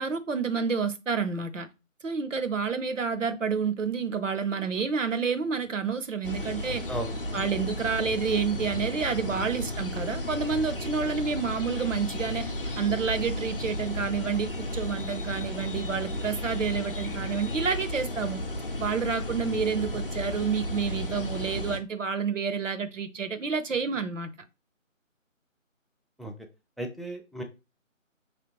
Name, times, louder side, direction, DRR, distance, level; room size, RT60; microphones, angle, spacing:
voice 1, 0.0-1.7 2.0-6.9 7.3-18.4 18.8-24.3, right 5 dB, 70° right, 0.7 m, -29 dB
sound 1, 6.2-21.8, left 1 dB, 45° left, 0.6 m, -33 dB
voice 2, 26.8-27.4, right 1 dB, ahead, 0.3 m, -36 dB
4.5 x 3.3 x 2.9 m
figure-of-eight pair, 160°, 40 cm